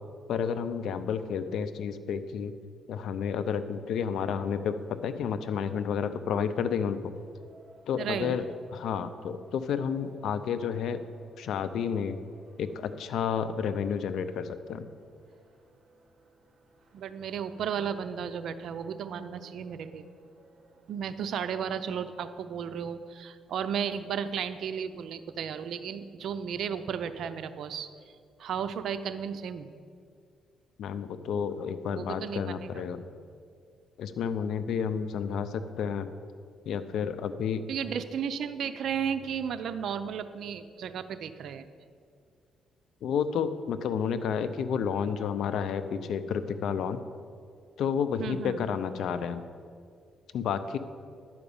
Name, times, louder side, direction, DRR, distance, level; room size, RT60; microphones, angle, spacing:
voice 1, 0.3-2.5 2.9-7.1 7.9-8.4 8.7-11.0 11.4-12.2 12.6-14.9 30.8-33.1 34.0-36.1 36.7-37.7 43.0-47.0 47.8-49.4 50.3-50.8, left 7 dB, 75° left, 11 dB, 0.6 m, -31 dB
sound 1, 3.9-21.2, right 1 dB, 40° right, 1.7 m, -58 dB
voice 2, 8.0-8.4 16.9-20.1 20.9-27.9 28.4-29.7 31.9-32.9 37.7-41.6 48.2-48.6, right 7 dB, 70° right, 11 dB, 0.5 m, -34 dB
11.0 x 5.1 x 7.0 m, 2.2 s
cardioid pair, 90°, 0 cm